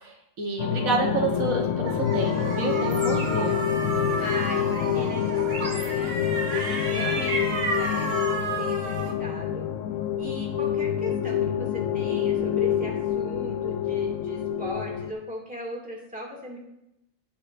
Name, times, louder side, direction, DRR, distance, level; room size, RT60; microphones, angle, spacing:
voice 1, 0.0-3.6, right 3 dB, 75° right, 1 dB, 1.6 m, -29 dB
sound 1, 0.6-15.1, left 9 dB, 75° left, 1.1 m, -27 dB
sound 2, 1.8-9.1, right 3 dB, 50° right, 1.3 m, -32 dB
sound 3, 2.9-6.6, right 1 dB, 25° right, 3.0 m, -43 dB
voice 2, 4.2-6.1 6.5-9.7 10.2-16.6, equal, 5° right, -3 dB, 2.2 m, -38 dB
17.0 x 6.0 x 2.6 m, 0.86 s
omnidirectional pair, 1.4 m